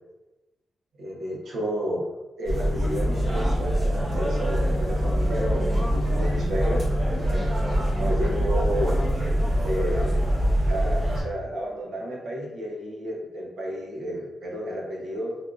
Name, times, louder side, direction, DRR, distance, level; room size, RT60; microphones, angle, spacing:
voice 1, 1.0-2.1 2.4-6.8 7.5-9.1 9.6-10.3 10.7-15.4, equal, 70° right, -2 dB, 0.7 m, -32 dB
sound 1, 2.5-11.2, equal, 35° right, 1.0 m, -24 dB
3.4 x 2.3 x 2.5 m, 1.1 s
wide cardioid pair, 160°, 0 cm